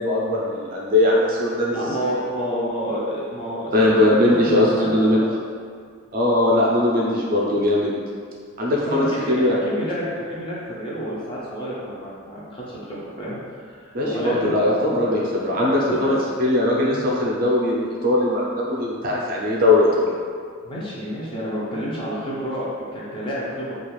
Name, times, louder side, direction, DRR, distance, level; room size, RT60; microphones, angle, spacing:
voice 1, 0.0-1.8 3.7-5.2 6.1-7.9 8.6-9.6 13.9-16.1 16.4-20.1, left 1 dB, 45° right, -4 dB, 0.4 m, -20 dB
voice 2, 1.7-5.3 8.7-14.5 15.8-16.2 20.6-23.7, equal, 25° left, -7 dB, 0.5 m, -29 dB
2.3 x 2.3 x 3.0 m, 2.1 s
head